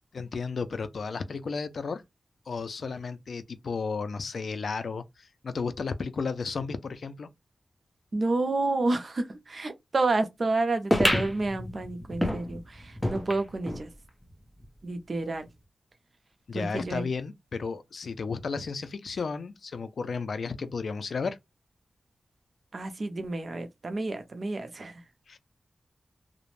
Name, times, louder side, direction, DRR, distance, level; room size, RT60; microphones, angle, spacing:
voice 1, 0.1-2.0 2.5-7.3 16.5-21.4 25.3-25.4, left 4 dB, 80° left, 0.4 m, -33 dB
voice 2, 8.1-13.9 14.8-15.5 16.5-17.1 22.7-25.0, right 2 dB, 50° right, 0.5 m, -30 dB
sound 1, 10.9-13.9 14.3-14.4 14.6-14.7 15.5-15.6, left 1 dB, 5° left, 0.7 m, -29 dB
2.4 x 2.0 x 3.1 m
wide cardioid pair, 120°, 0 cm